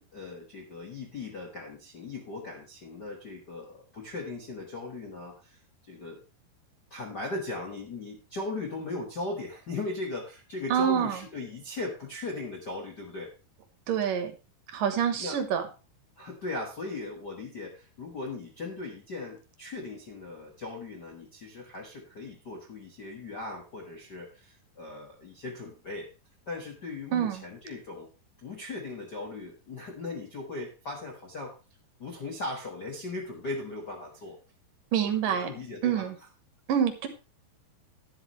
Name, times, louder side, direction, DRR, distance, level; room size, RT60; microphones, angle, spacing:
voice 1, 0.0-5.6 5.9-6.2 6.9-13.3 15.2-15.4 16.2-26.1 26.5-28.1 28.4-31.6 32.0-34.4 35.0-36.1, left 2 dB, 50° left, 0 dB, 1.2 m, -38 dB
voice 2, 10.7-11.2 13.9-14.3 14.7-15.6 27.1-27.4 34.9-35.5 35.8-36.1 36.7-37.1, right 8 dB, 65° right, 8 dB, 2.6 m, -26 dB
11.5 x 11.0 x 3.2 m, 0.32 s
omnidirectional pair, 4.5 m